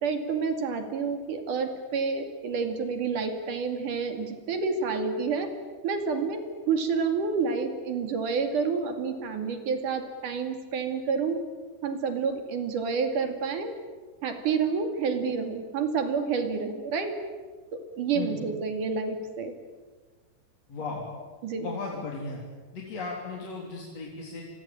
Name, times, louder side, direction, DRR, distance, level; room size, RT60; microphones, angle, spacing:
voice 1, 0.0-5.5 5.8-11.4 11.8-13.7 14.2-17.2 18.0-19.6 21.4-21.7, right 5 dB, 55° right, 7 dB, 3.8 m, -29 dB
voice 2, 20.7-21.1 21.6-22.4 22.7-24.4, left 4 dB, 40° left, -1 dB, 4.2 m, -36 dB
29.0 x 23.0 x 8.9 m, 1.4 s
omnidirectional pair, 4.7 m